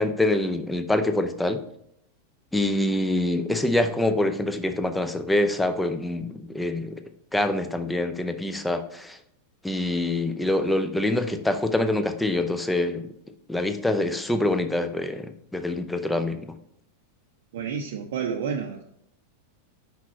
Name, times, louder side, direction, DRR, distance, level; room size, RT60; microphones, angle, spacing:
voice 1, 0.0-1.6 2.5-7.0 7.3-9.2 9.6-13.1 13.5-16.5, left 1 dB, 5° left, 8 dB, 0.6 m, -25 dB
voice 2, 17.5-18.8, right 6 dB, 55° right, 2 dB, 0.6 m, -30 dB
6.1 x 5.5 x 4.2 m, 0.74 s
figure-of-eight pair, 90°, 0 cm